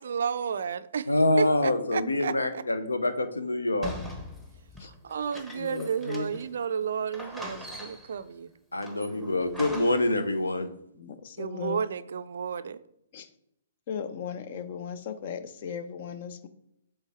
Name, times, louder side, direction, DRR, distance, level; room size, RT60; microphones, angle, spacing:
voice 1, 0.0-1.1 1.4-2.6 4.8-8.5 8.9-9.3 11.4-12.8, right 7 dB, 55° right, 0.4 m, -32 dB
voice 2, 1.1-3.9 8.7-10.7, left 2 dB, 75° left, 0.7 m, -26 dB
sound 1, 3.8-6.6 6.8-6.9 7.1-8.2 8.8-10.2, left 1 dB, 5° left, 1.0 m, -41 dB
voice 3, 5.5-6.4 10.9-11.8 13.1-13.3 13.9-16.5, left 6 dB, 45° left, 0.6 m, -37 dB
7.9 x 3.4 x 4.3 m
figure-of-eight pair, 120°, 0 cm